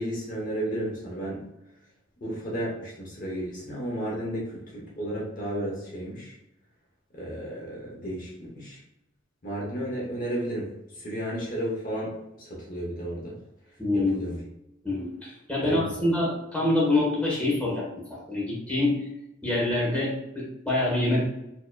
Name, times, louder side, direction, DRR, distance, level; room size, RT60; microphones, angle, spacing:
voice 1, 0.0-1.4 2.2-6.4 7.1-8.8 9.4-12.1 12.4-13.4 13.9-14.4 15.6-16.1, right 1 dB, 40° left, -4 dB, 0.8 m, -33 dB
voice 2, 13.8-14.1 14.8-19.1 19.4-21.3, left 2 dB, 5° left, -5 dB, 1.1 m, -26 dB
4.4 x 2.8 x 2.2 m, 0.88 s
head